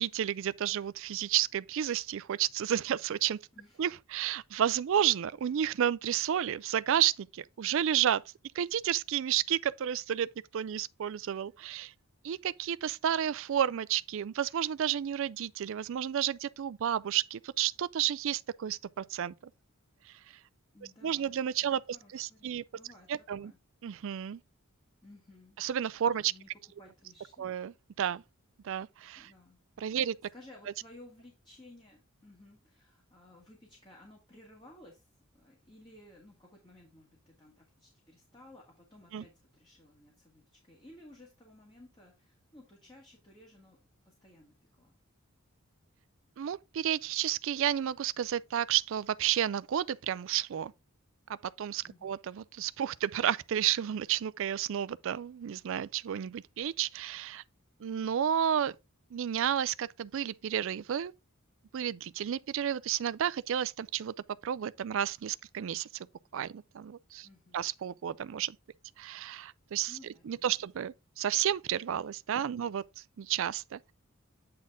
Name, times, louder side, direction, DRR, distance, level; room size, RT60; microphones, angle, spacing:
voice 1, 0.0-3.4 3.8-8.2 8.5-11.9 12.2-19.3 21.0-21.8 22.1-22.6 23.1-23.5 23.8-24.4 25.6-26.3 27.4-28.2 28.6-29.3 29.8-30.2 39.1-39.2 46.4-50.7 51.6-57.4 57.8-58.8 59.1-61.1 61.7-64.1 64.4-66.1 66.3-67.3 67.5-68.6 69.0-69.9 70.3-72.8 73.2-73.9, right 10 dB, 65° right, 0.4 m, -31 dB
voice 2, 3.5-3.8 20.7-23.1 23.4-23.6 25.0-25.6 26.2-26.5 26.8-27.5 29.2-29.6 30.0-35.1 35.3-43.8 44.0-45.0 51.8-52.1 67.2-67.6 69.9-70.5, left 1 dB, 20° left, 1.9 m, -56 dB
8.6 x 4.2 x 3.7 m
head